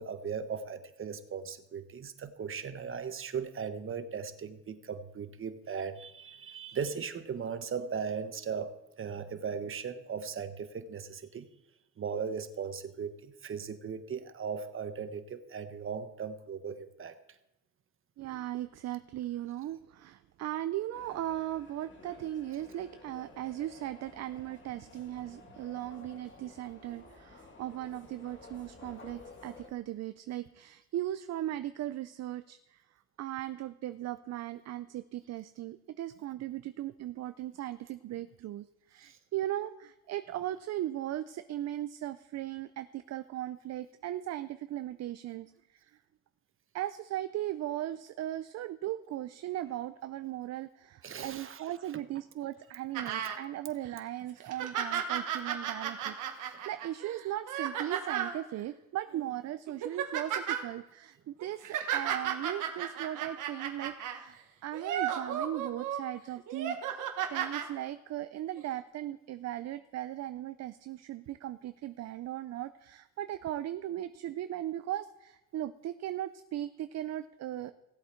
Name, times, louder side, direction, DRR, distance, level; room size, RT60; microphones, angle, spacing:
voice 1, 0.0-11.5 12.0-17.2 39.0-39.2 51.0-51.6 57.8-57.9, right 6 dB, 45° right, 10 dB, 1.1 m, -38 dB
voice 2, 18.2-32.8 33.2-45.5 45.9-46.0 46.7-77.7, right 13 dB, 60° right, 12 dB, 0.5 m, -38 dB
sound 1, 20.9-29.7, left 3 dB, 40° left, 2.2 m, -53 dB
sound 2, 52.9-53.4 53.9-54.0 54.4-58.4 59.1-59.3 59.7-60.6 61.4-64.2 64.7-66.0 66.5-67.7 68.6-68.7, right 9 dB, 85° right, 1.4 m, -34 dB
16.5 x 8.0 x 4.5 m, 0.94 s
cardioid pair, 90°, 30 cm